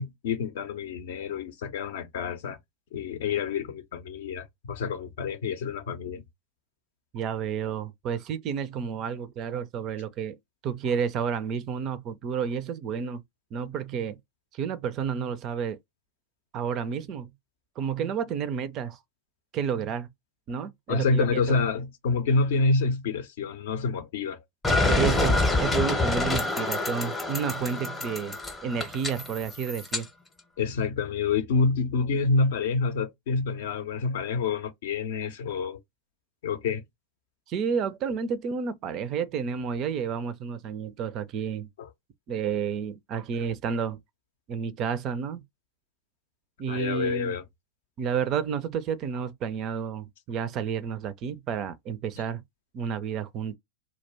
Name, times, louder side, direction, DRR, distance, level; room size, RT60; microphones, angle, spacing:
voice 1, 0.0-2.6 2.9-6.2 20.9-24.4 30.6-35.8 36.4-36.8 41.8-41.9 46.7-47.4, left 4 dB, 55° left, 0.5 m, -27 dB
voice 2, 7.1-10.4 10.6-13.2 13.5-14.2 14.5-15.8 16.5-17.3 17.8-19.0 19.5-20.1 20.5-21.6 24.8-28.4 28.6-30.1 37.5-41.7 42.3-44.0 44.5-45.4 46.6-47.3 48.0-52.4 52.7-53.6, right 7 dB, 35° right, 0.4 m, -30 dB
sound 1, 24.6-30.0, left 2 dB, 10° left, 0.7 m, -27 dB
2.3 x 2.1 x 3.3 m
figure-of-eight pair, 90°, 0 cm